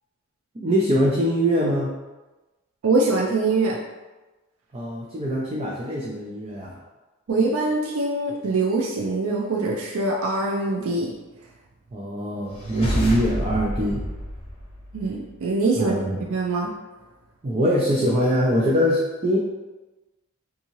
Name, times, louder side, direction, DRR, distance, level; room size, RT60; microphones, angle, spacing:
voice 1, 0.5-1.9 4.7-6.8 11.9-14.0 15.7-16.2 17.4-19.4, equal, 30° right, -4 dB, 0.4 m, -23 dB
voice 2, 2.8-3.8 7.3-11.1 14.9-16.0 16.3-16.7, right 3 dB, 90° right, -1 dB, 0.4 m, -23 dB
sound 1, 12.5-15.3, equal, 30° left, 0.8 m, -29 dB
3.5 x 2.7 x 2.9 m, 1.1 s
head